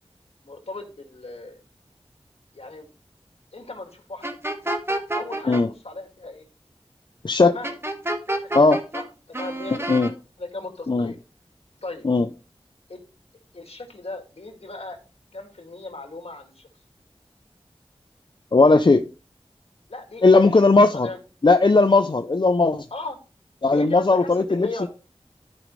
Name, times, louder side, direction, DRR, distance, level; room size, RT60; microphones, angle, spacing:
voice 1, 0.4-1.6 2.5-2.9 3.5-4.2 5.1-6.4 7.4-7.8 8.4-8.7 8.9-10.0 10.4-11.2 11.8-12.1 12.9-13.0 13.5-15.0 15.3-16.7 19.9-20.2 20.9-21.2 22.9-23.2 23.7-24.9, left 2 dB, 75° left, 4 dB, 2.1 m, -37 dB
sound 1, 4.2-5.6 7.6-9.0 9.3-10.1, right 1 dB, 25° right, 1.4 m, -28 dB
voice 2, 18.5-19.0 20.2-21.1 21.4-22.9 23.6-24.9, left 3 dB, 50° left, 8 dB, 0.5 m, -17 dB
13.5 x 5.2 x 3.1 m, 0.32 s
wide cardioid pair, 60°, 10 cm